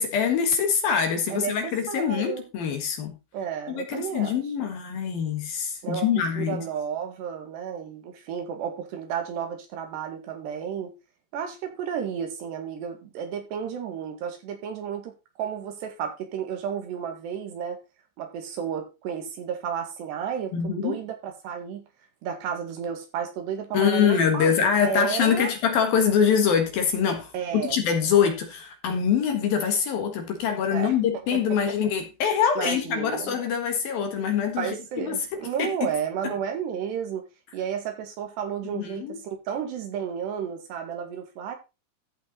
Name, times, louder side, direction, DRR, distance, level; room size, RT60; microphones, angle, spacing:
voice 1, 0.0-3.1 3.7-6.6 20.5-21.0 23.7-35.2 35.6-35.7 38.6-39.2, left 7 dB, 60° left, 3.1 m, -24 dB
voice 2, 1.3-2.5 3.3-4.7 5.8-11.0 11.3-17.8 18.2-21.8 22.2-25.5 27.3-27.8 30.7-30.9 31.3-31.8 32.6-33.4 34.6-37.3 37.5-41.6, right 8 dB, 70° right, 4.1 m, -32 dB
14.5 x 5.9 x 3.9 m
omnidirectional pair, 5.2 m